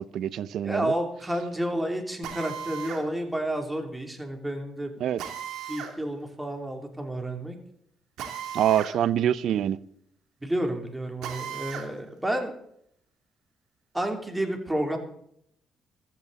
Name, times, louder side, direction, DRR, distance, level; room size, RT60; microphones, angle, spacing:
voice 1, 0.0-0.9 5.0-5.2 8.5-9.8, right 10 dB, 75° right, 0.6 m, -25 dB
voice 2, 0.6-4.9 5.7-7.6 10.4-12.5 13.9-15.0, right 1 dB, 10° right, 3.1 m, -30 dB
Drill, 2.2-3.0 5.2-5.9 8.2-8.9 9.3-9.4 11.2-11.9, right 8 dB, 90° right, 2.7 m, -36 dB
15.0 x 14.0 x 4.1 m
cardioid pair, 90°, 0 cm